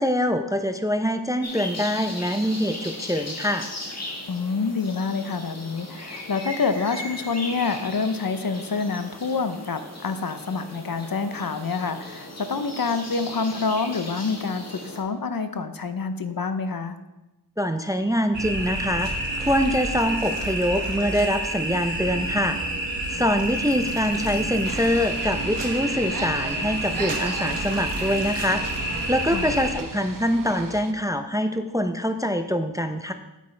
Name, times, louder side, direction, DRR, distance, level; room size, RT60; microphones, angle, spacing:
voice 1, 0.0-3.7 17.6-22.6 23.1-33.1, equal, 10° right, 7 dB, 0.5 m, -24 dB
sound 1, 1.4-15.0, left 1 dB, 35° left, 1.6 m, -38 dB
voice 2, 4.3-17.0 29.3-29.5, left 4 dB, 55° left, 10 dB, 0.7 m, -27 dB
sound 2, 18.3-29.7, right 1 dB, 80° right, 1.4 m, -29 dB
sound 3, 24.6-30.9, right 5 dB, 50° right, 0.7 m, -37 dB
8.4 x 8.2 x 3.3 m, 1.0 s
wide cardioid pair, 50°, 43 cm